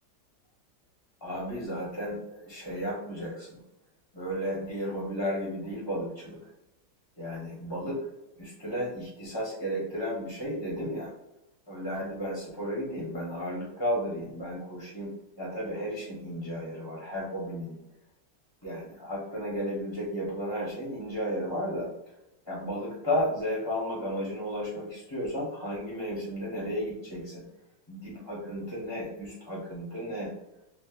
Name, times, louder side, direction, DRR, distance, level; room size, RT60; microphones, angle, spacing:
voice 1, 1.2-3.6 4.1-6.4 7.2-8.0 8.4-11.1 11.7-17.8 18.6-21.9 22.5-27.4 27.9-30.3, equal, 15° left, -5 dB, 0.7 m, -33 dB
6.2 x 2.2 x 2.4 m, 0.92 s
omnidirectional pair, 2.0 m